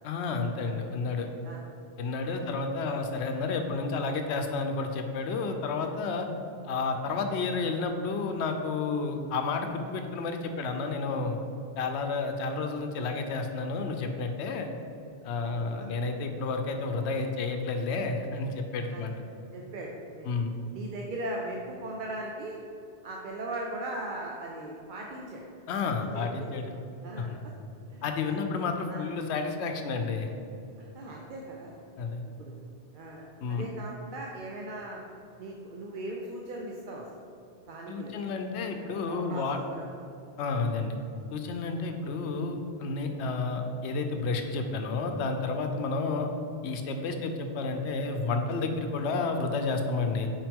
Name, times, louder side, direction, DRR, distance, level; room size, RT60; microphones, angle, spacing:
voice 1, 0.0-1.3 2.0-6.3 6.7-11.4 11.8-14.7 15.2-19.1 20.3-20.5 25.7-26.7 27.2-27.4 28.0-30.3 32.0-32.2 33.4-33.7 37.9-39.6 40.4-41.0 41.3-46.3 46.6-50.3, left 4 dB, 90° left, 5 dB, 0.9 m, -31 dB
voice 2, 19.5-20.3 20.7-22.6 23.0-25.4 26.0-26.6 27.0-27.5 27.9-28.3 28.9-29.0 30.8-31.8 32.4-32.5 32.9-35.0 35.4-37.1 37.7-38.1 38.6-39.6, right 1 dB, 55° right, -1 dB, 0.7 m, -39 dB
5.8 x 4.6 x 3.5 m, 2.7 s
omnidirectional pair, 1.1 m